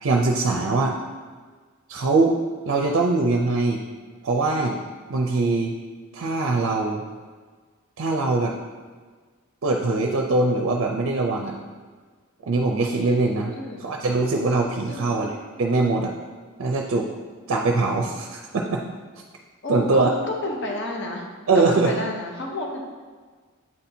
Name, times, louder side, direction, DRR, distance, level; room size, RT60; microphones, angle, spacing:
voice 1, 0.0-0.9 1.9-2.4 2.7-3.8 4.2-4.8 5.1-5.7 6.1-7.0 8.0-8.5 9.6-11.5 12.5-13.5 13.8-16.1 16.6-17.1 17.5-18.8 19.7-20.1 21.5-21.9, right 3 dB, 60° right, 1 dB, 0.5 m, -22 dB
voice 2, 13.5-13.9 14.9-15.2 19.6-20.0 20.4-21.2 21.5-22.8, left 2 dB, 55° left, 0 dB, 0.8 m, -30 dB
8.5 x 4.3 x 2.7 m, 1.5 s
head